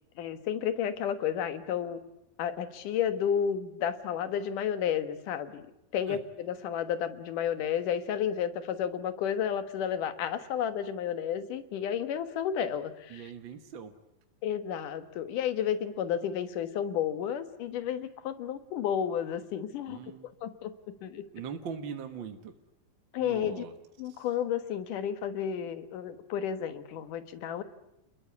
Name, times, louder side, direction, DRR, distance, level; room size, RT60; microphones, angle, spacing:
voice 1, 0.2-2.0 2.4-5.7 5.9-13.3 14.4-20.0 20.4-20.7 21.0-21.2 23.1-23.6 24.0-27.6, left 9 dB, 75° left, 10 dB, 2.9 m, -32 dB
voice 2, 13.1-13.9 19.9-20.3 21.3-22.5 23.2-23.7 24.1-24.2, right 6 dB, 55° right, 7 dB, 1.4 m, -41 dB
29.5 x 21.5 x 8.5 m, 0.86 s
omnidirectional pair, 3.8 m